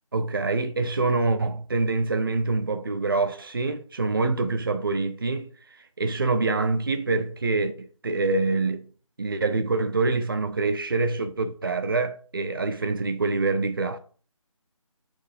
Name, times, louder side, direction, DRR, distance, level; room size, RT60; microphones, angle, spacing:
voice 1, 0.1-5.5 6.0-8.9 9.2-14.0, right 3 dB, 40° right, 0.7 m, -25 dB
4.9 x 4.4 x 5.1 m
figure-of-eight pair, 160°, 18 cm